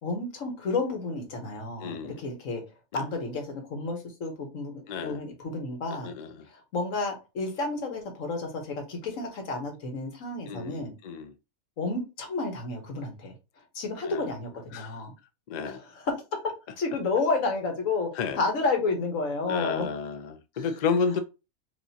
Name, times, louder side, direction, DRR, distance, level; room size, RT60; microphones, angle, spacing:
voice 1, 0.0-2.6 2.9-6.1 6.5-10.9 11.8-13.3 13.7-15.1 15.6-19.9 20.6-20.7, left 3 dB, 90° left, 1.5 m, -31 dB
voice 2, 1.8-2.2 2.9-3.0 4.9-5.2 6.0-6.3 10.5-11.3 14.0-14.3 14.7-15.0 15.5-15.8 18.2-18.4 19.5-21.2, left 5 dB, 65° left, 0.4 m, -31 dB
4.8 x 2.7 x 2.7 m
omnidirectional pair, 1.3 m